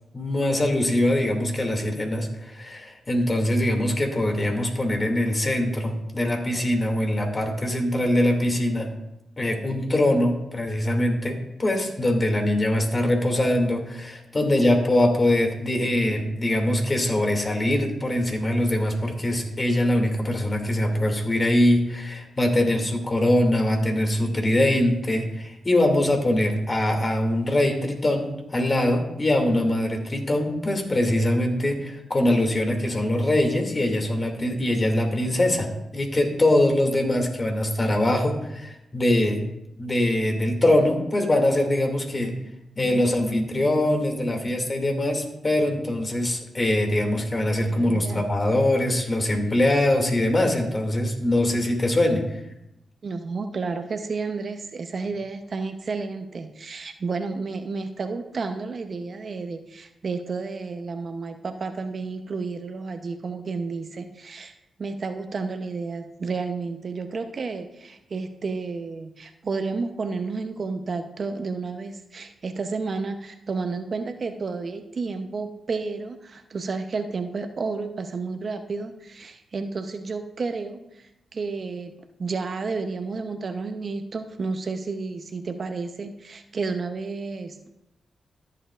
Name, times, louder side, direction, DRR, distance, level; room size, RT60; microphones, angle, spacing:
voice 1, 0.1-8.9 9.4-39.4 39.8-42.3 42.8-52.4, left 1 dB, 35° left, 3 dB, 2.4 m, -23 dB
voice 2, 47.7-48.3 53.0-64.5 64.8-81.9 82.2-87.8, right 4 dB, 55° right, 8 dB, 0.7 m, -31 dB
14.0 x 7.8 x 2.5 m, 0.87 s
supercardioid pair, 40°, 0 cm